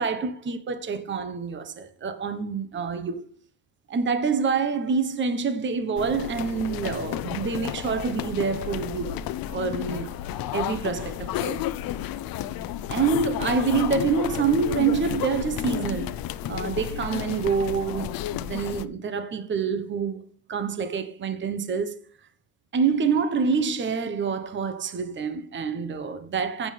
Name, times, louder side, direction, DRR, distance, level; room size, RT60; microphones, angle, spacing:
voice 1, 0.0-3.3 3.9-9.2 9.5-10.1 10.5-11.6 12.9-16.2 16.5-20.2 20.5-22.0 22.7-26.7, right 5 dB, 25° right, 1.2 m, -26 dB
sound 1, 6.0-18.9, left 12 dB, 60° left, 0.8 m, -32 dB
15.0 x 8.9 x 3.4 m
cardioid pair, 120°, 41 cm